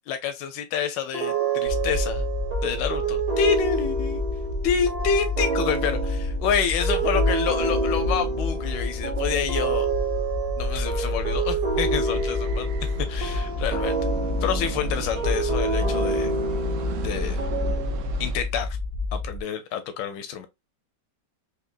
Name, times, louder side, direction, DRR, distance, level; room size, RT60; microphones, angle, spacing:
voice 1, 0.1-2.2 2.6-4.2 4.6-9.9 10.6-14.0 14.4-16.3 17.0-17.4 18.2-18.8 19.1-20.5, left 7 dB, 80° left, 1.3 m, -28 dB
sound 1, 1.1-18.3, right 4 dB, 35° right, 0.6 m, -29 dB
sound 2, 1.7-19.4, left 3 dB, 45° left, 0.6 m, -29 dB
sound 3, 11.2-18.4, right 9 dB, 90° right, 0.6 m, -38 dB
5.1 x 2.8 x 2.4 m
omnidirectional pair, 2.0 m